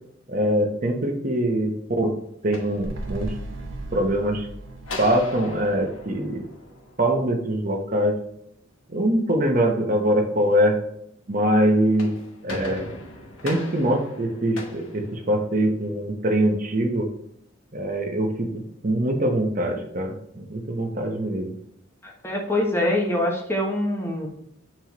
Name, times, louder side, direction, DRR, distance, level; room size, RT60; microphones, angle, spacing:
voice 1, 0.3-2.1 2.4-3.3 3.9-4.5 5.0-6.4 7.0-8.2 8.9-10.8 11.3-12.1 12.4-12.9 13.4-17.1 17.7-21.5, right 1 dB, 40° right, 2 dB, 1.1 m, -23 dB
sound 1, 2.3-3.5 4.8-7.3 11.7-15.8, left 2 dB, 85° left, 1.3 m, -39 dB
sound 2, 2.7-7.3 7.6-7.7, right 1 dB, 80° right, 1.1 m, -37 dB
voice 2, 22.0-24.3, left 1 dB, 10° left, 0 dB, 1.1 m, -24 dB
7.6 x 4.4 x 3.1 m, 0.76 s
head